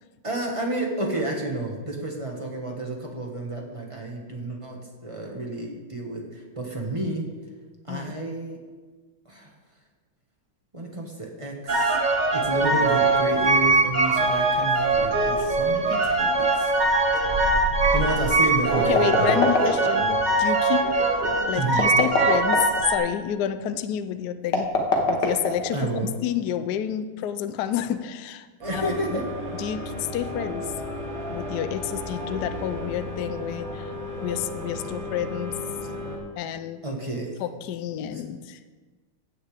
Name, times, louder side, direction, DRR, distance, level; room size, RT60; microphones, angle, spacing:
voice 1, 0.2-7.3 7.9-8.6 9.2-9.5 10.7-12.0 12.3-16.7 17.9-19.4 19.6-19.8 21.6-21.8 25.7-26.1 28.6-29.2 36.8-37.4 38.1-38.2, right 2 dB, 15° right, -1 dB, 1.3 m, -30 dB
sound 1, 11.7-23.0, right 2 dB, 85° right, 0.4 m, -22 dB
sound 2, 18.7-20.2 21.7-22.8 24.4-26.0, left 3 dB, 60° left, 1.7 m, -24 dB
voice 2, 18.9-20.1 20.4-20.9 21.5-24.7 25.1-25.9 26.2-28.5 28.7-29.2 29.5-30.7 31.3-33.9 34.2-35.6 36.4-36.8 37.4-38.6, left 10 dB, 85° left, 10 dB, 0.8 m, -29 dB
sound 3, 28.6-36.2, left 1 dB, 70° right, 2.6 m, -34 dB
15.5 x 8.4 x 3.4 m, 1.4 s
omnidirectional pair, 2.3 m